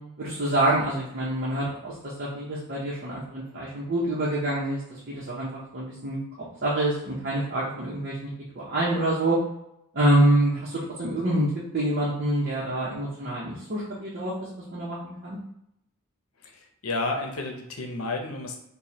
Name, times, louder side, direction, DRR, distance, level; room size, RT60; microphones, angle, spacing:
voice 1, 0.2-9.4 9.9-14.3 14.7-15.4, right 1 dB, 50° right, -6 dB, 0.9 m, -26 dB
voice 2, 16.4-18.6, left 2 dB, 80° left, 3 dB, 0.7 m, -31 dB
5.0 x 2.3 x 2.9 m, 0.79 s
head